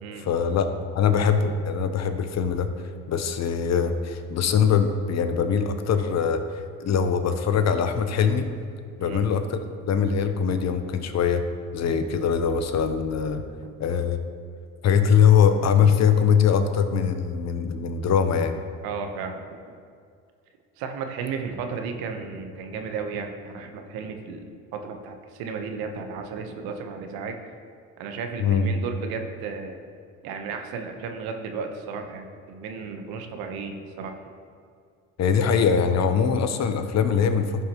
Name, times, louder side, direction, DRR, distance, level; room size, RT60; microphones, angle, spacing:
voice 1, 0.2-2.7 3.1-6.4 6.8-8.5 9.0-9.6 9.9-11.4 11.7-13.4 13.8-14.2 14.8-18.5 28.4-28.7 35.2-37.6, left 7 dB, 45° left, 8 dB, 1.0 m, -22 dB
voice 2, 18.8-19.4 20.8-24.4 24.7-27.4 28.0-29.8 30.2-34.1, right 5 dB, 70° right, 5 dB, 1.2 m, -34 dB
14.5 x 5.5 x 3.1 m, 2.2 s
hypercardioid pair, 75°, 38 cm